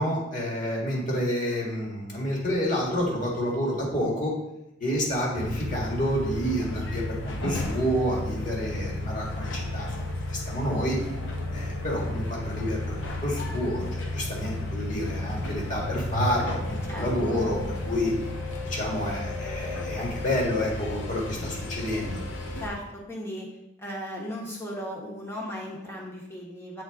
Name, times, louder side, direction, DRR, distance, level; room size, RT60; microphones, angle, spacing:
voice 1, 0.0-4.3 4.8-11.0 11.5-18.1 18.6-22.2, equal, 40° left, -2 dB, 1.8 m, -29 dB
sound 1, 5.3-22.7, left 2 dB, 85° left, 0.9 m, -33 dB
voice 2, 16.9-17.4 22.6-23.5 23.8-26.8, equal, 15° left, -3 dB, 1.3 m, -36 dB
8.0 x 4.0 x 3.6 m, 0.89 s
head